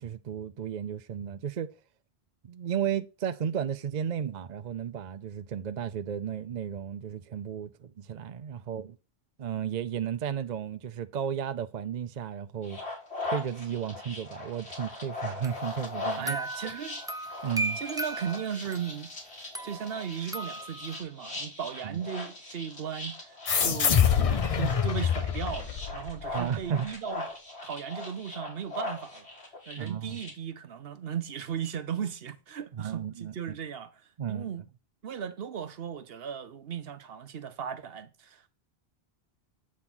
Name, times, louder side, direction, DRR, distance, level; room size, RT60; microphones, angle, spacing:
voice 1, 0.0-1.7 2.4-9.0 9.4-12.8 13.2-16.4 16.6-16.7 17.4-17.8 21.8-22.0 26.3-26.9 29.8-30.2 32.7-33.4 34.2-34.5, right 8 dB, 50° right, 0.6 m, -34 dB
sound 1, 12.6-30.3, left 2 dB, 85° left, 2.8 m, -40 dB
sound 2, 15.4-19.0 19.5-21.0, right 1 dB, 5° right, 0.5 m, -37 dB
voice 2, 16.2-17.0 17.8-19.1 19.6-27.2 27.6-29.3 29.7-33.9 34.3-34.6 35.0-38.5, right 8 dB, 70° right, 1.0 m, -36 dB
sound 3, 23.5-26.5, left 7 dB, 40° left, 0.6 m, -26 dB
8.4 x 3.8 x 6.0 m
omnidirectional pair, 1.1 m